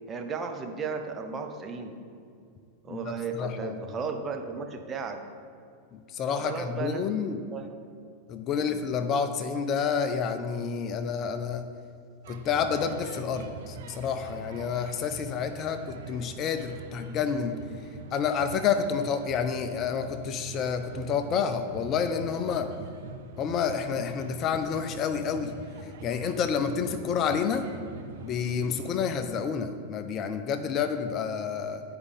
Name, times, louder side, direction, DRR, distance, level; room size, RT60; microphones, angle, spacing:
voice 1, 0.1-1.9 2.8-5.2 6.4-7.1 7.5-7.7 8.5-8.8, right 5 dB, 20° right, 4 dB, 0.7 m, -35 dB
voice 2, 3.4-3.7 5.9-7.4 8.3-11.7 12.3-17.6 18.1-22.7 23.4-25.5 25.8-27.7 28.2-31.8, left 6 dB, 35° left, 8 dB, 0.4 m, -29 dB
sound 1, 12.2-29.0, right 5 dB, 55° right, 0.6 m, -44 dB
9.5 x 4.9 x 3.6 m, 2.3 s
figure-of-eight pair, 90°, 0 cm